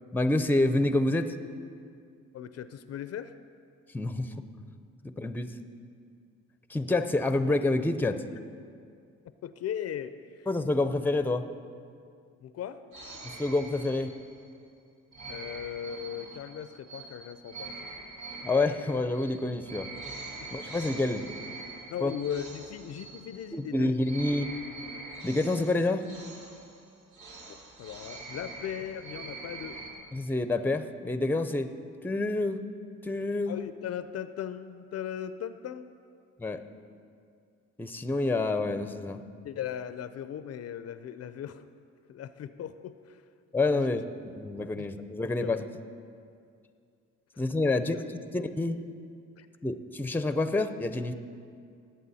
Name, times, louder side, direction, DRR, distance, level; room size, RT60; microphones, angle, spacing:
voice 1, 0.1-1.3 3.9-4.3 5.0-5.5 6.7-8.2 10.5-11.5 13.2-14.1 18.4-19.9 20.5-21.3 22.0-22.1 23.5-24.5 25.2-26.0 30.1-31.7 32.0-32.6 33.0-33.6 36.4-36.6 37.8-39.2 43.5-45.6 47.4-48.1 48.3-48.8 49.6-51.1, left 2 dB, 5° left, 10 dB, 0.5 m, -28 dB
voice 2, 2.3-3.3 9.4-10.5 12.4-12.8 15.3-17.7 20.4-20.5 21.9-23.9 27.8-29.8 33.5-35.9 39.4-41.6 42.1-43.2 43.7-44.0 44.8-44.9 45.4-45.6 47.3-47.4 49.4-49.5, left 9 dB, 55° left, 12 dB, 0.5 m, -38 dB
sound 1, 12.9-14.5 15.1-23.7 24.0-29.9, right 3 dB, 75° right, 2.0 m, -44 dB
19.5 x 8.0 x 4.1 m, 2.3 s
cardioid pair, 90°, 30 cm